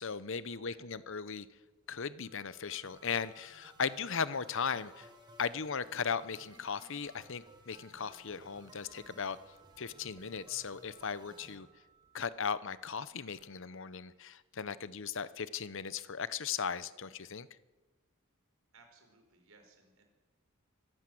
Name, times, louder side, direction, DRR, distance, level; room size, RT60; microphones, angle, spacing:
voice 1, 0.0-1.5 1.9-5.1 5.4-9.4 9.8-11.7 12.1-17.5, left 6 dB, 65° left, 16 dB, 0.8 m, -37 dB
voice 2, 0.5-0.9 18.7-20.0, right 3 dB, 75° right, 5 dB, 4.7 m, -62 dB
sound 1, 1.0-12.5, equal, 35° right, 5.8 m, -67 dB
sound 2, 2.2-14.2, right 2 dB, 55° right, 6.5 m, -66 dB
sound 3, 2.8-11.5, right 2 dB, 20° right, 3.7 m, -60 dB
24.5 x 14.5 x 7.8 m, 1.3 s
head